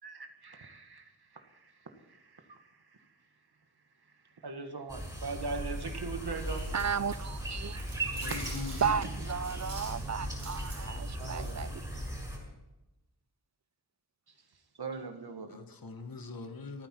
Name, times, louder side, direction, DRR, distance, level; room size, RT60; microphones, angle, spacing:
voice 1, 0.0-3.1 4.2-6.7 8.9-9.1 11.2-11.6 14.8-15.6, right 4 dB, 65° right, 5 dB, 1.8 m, -41 dB
sound 1, 4.9-12.4, equal, 10° right, 6.7 m, -38 dB
Chewing mastication, 5.7-12.1, right 3 dB, 90° right, 4.8 m, -46 dB
voice 2, 6.7-7.9 8.8-11.8, right 7 dB, 40° right, 18 dB, 0.5 m, -34 dB
voice 3, 8.1-9.2 10.4-10.5 15.5-16.9, left 4 dB, 55° left, 7 dB, 1.4 m, -42 dB
29.5 x 9.8 x 4.6 m, 1.0 s
wide cardioid pair, 85°, 41 cm